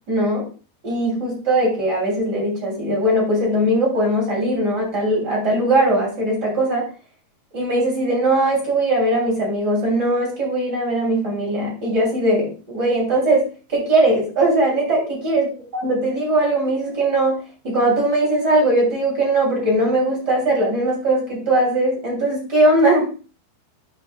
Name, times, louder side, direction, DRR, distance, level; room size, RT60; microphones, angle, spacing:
voice 1, 0.1-0.5 0.8-6.9 7.5-13.4 13.7-15.5 15.8-17.4 17.6-23.1, right 1 dB, 25° right, -3 dB, 3.1 m, -20 dB
10.5 x 5.3 x 2.3 m, 0.35 s
omnidirectional pair, 4.7 m